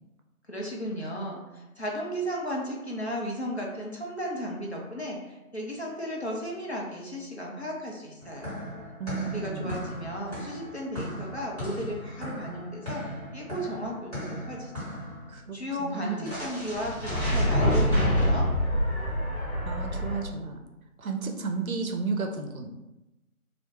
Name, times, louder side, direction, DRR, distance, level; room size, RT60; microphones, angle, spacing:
voice 1, 0.5-8.6 9.1-13.0 13.3-15.0 15.5-18.5, equal, 50° left, -2 dB, 0.5 m, -35 dB
sound 1, 8.2-15.2 16.2-20.2, equal, 25° left, 1.2 m, -29 dB
voice 2, 9.0-9.8 15.3-16.4 19.6-20.6 21.0-22.7, right 4 dB, 70° right, 3 dB, 0.5 m, -33 dB
2.2 x 2.0 x 3.0 m, 0.97 s
figure-of-eight pair, 160°, 43 cm